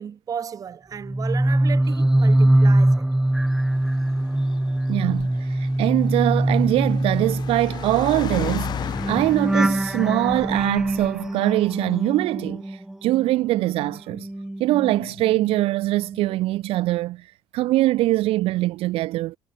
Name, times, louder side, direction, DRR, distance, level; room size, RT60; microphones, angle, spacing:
voice 1, 0.0-3.1, right 7 dB, 35° right, 2.3 m, -34 dB
sound 1, 1.0-13.3 13.6-15.7 16.0-16.3, right 1 dB, 5° right, 1.3 m, -23 dB
Car, 3.3-11.3, left 10 dB, 45° left, 1.1 m, -36 dB
voice 2, 4.9-14.3 14.6-17.3 17.5-19.4, right 17 dB, 70° right, 1.1 m, -23 dB
cardioid pair, 130°, 10 cm